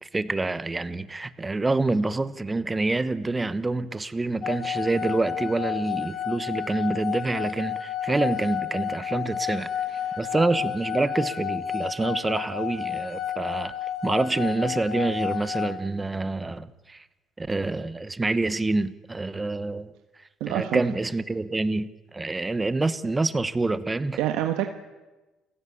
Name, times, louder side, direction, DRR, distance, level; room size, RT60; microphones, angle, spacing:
voice 1, 0.0-9.7 10.2-13.7 14.0-17.0 17.4-19.9 20.5-24.2, right 2 dB, 15° right, 1.2 m, -27 dB
sound 1, 4.4-15.7, left 9 dB, 35° left, 5.0 m, -31 dB
voice 2, 9.9-10.2 20.4-20.8 24.2-24.7, right 12 dB, 80° right, 1.6 m, -27 dB
29.0 x 17.0 x 8.6 m
cardioid pair, 135°, 0 cm